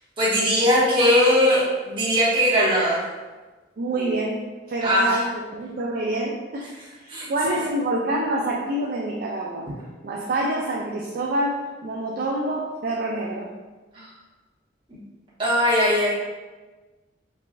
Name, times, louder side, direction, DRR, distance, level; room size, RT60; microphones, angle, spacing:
voice 1, 0.2-3.0 4.8-5.2 7.1-7.3 13.9-14.1 14.9-15.0 15.4-16.1, equal, 25° right, -10 dB, 1.3 m, -20 dB
voice 2, 3.8-6.7 7.0-9.7 10.0-13.5, right 1 dB, 50° right, -2 dB, 0.3 m, -27 dB
4.6 x 2.5 x 2.5 m, 1.3 s
head